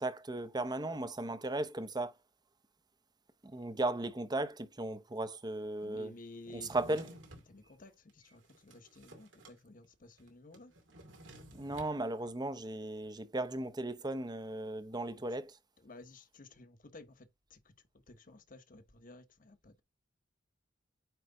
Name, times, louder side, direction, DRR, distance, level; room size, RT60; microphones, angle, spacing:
voice 1, 0.0-2.1 3.5-6.1 6.5-7.1 11.5-15.6, right 2 dB, 20° right, 0.8 m, -36 dB
voice 2, 5.8-7.0 7.5-10.7 15.1-15.2 15.8-17.6 18.1-19.8, left 2 dB, 45° left, 1.1 m, -54 dB
Drawer open or close, 6.5-7.5 8.1-9.6 9.8-9.9 10.2-12.0, right 1 dB, 85° right, 2.2 m, -53 dB
9.2 x 3.2 x 3.7 m
head